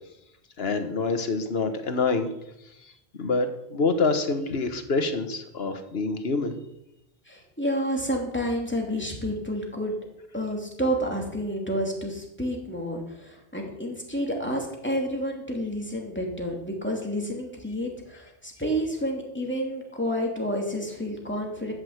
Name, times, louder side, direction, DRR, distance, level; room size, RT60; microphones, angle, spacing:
voice 1, 0.6-2.3 3.2-3.5 3.7-6.5, left 3 dB, 75° left, 8 dB, 1.6 m, -26 dB
voice 2, 7.3-10.0 10.3-21.7, equal, 10° left, -1 dB, 2.8 m, -30 dB
13.0 x 6.6 x 7.9 m, 0.85 s
omnidirectional pair, 1.0 m